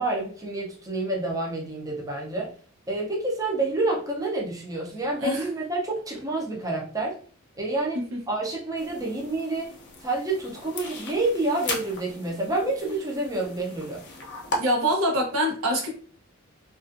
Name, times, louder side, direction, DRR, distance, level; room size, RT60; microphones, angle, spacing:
voice 1, 0.0-2.5 2.9-7.2 7.6-8.0 8.3-9.7 10.0-14.0, right 2 dB, 15° right, -2 dB, 0.5 m, -28 dB
sound 1, 8.8-14.6, left 2 dB, 55° left, 0.6 m, -37 dB
voice 2, 14.6-15.9, equal, 85° right, 1 dB, 0.8 m, -25 dB
2.4 x 2.3 x 2.4 m, 0.43 s
head